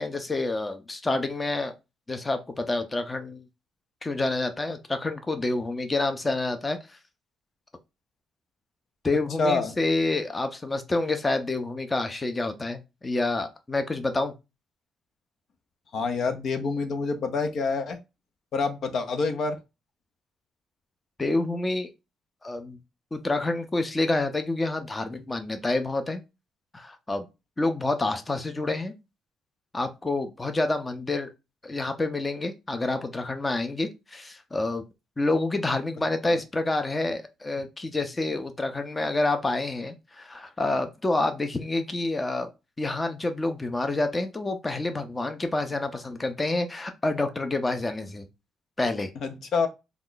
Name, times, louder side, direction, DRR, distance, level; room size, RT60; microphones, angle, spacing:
voice 1, 0.0-1.7 2.1-3.4 4.0-7.0 9.0-14.3 21.2-21.9 22.4-22.8 23.1-26.2 26.7-27.3 27.6-28.9 29.7-31.3 31.6-34.8 35.2-42.5 42.8-48.3 48.8-49.1, left 2 dB, 20° left, 0.6 m, -28 dB
voice 2, 9.4-9.7 15.9-18.0 18.5-19.6 36.3-36.4 49.2-49.7, left 4 dB, 65° left, 0.6 m, -27 dB
3.0 x 2.3 x 3.8 m
cardioid pair, 90°, 0 cm